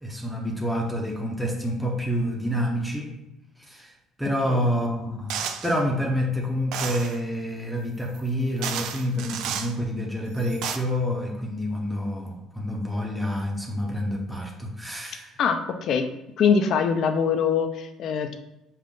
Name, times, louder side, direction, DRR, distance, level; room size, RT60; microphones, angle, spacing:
voice 1, 0.0-3.1 3.6-3.9 4.2-15.4, equal, ahead, -1 dB, 0.8 m, -28 dB
sound 1, 5.3-5.8 6.7-7.2 8.1-8.2 8.6-9.7 10.4-10.8, right 7 dB, 75° right, 0.4 m, -31 dB
voice 2, 15.4-16.1 16.4-18.3, left 6 dB, 60° left, 7 dB, 0.6 m, -23 dB
5.5 x 2.5 x 3.8 m, 0.91 s
cardioid pair, 100°, 0 cm